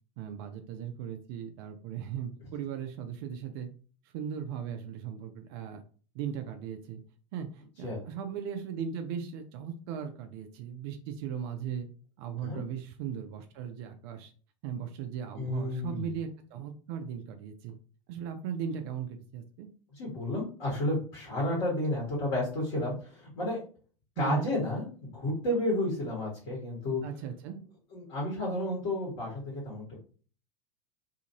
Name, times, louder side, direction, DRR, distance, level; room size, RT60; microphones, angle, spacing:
voice 1, 0.2-3.7 4.1-5.8 6.1-7.0 7.3-11.9 12.2-14.3 14.6-17.7 18.1-19.7 24.2-24.5 27.0-27.6, right 8 dB, 50° right, 7 dB, 0.4 m, -37 dB
voice 2, 15.4-16.1 19.9-23.6 24.2-27.0 27.9-30.0, left 1 dB, 55° left, -5 dB, 1.5 m, -31 dB
2.8 x 2.5 x 2.8 m, 0.40 s
figure-of-eight pair, 80°, 17 cm